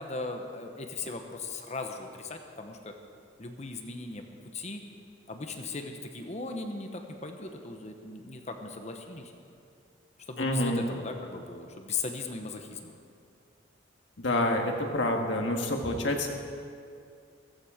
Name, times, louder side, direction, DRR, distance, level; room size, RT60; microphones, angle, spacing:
voice 1, 0.0-2.9 3.4-4.2 4.5-4.8 5.3-9.3 10.3-12.9, left 3 dB, 35° left, 5 dB, 1.1 m, -38 dB
voice 2, 10.4-10.8 14.2-16.3, left 1 dB, 65° left, 2 dB, 1.8 m, -28 dB
15.5 x 15.5 x 5.1 m, 2.4 s
head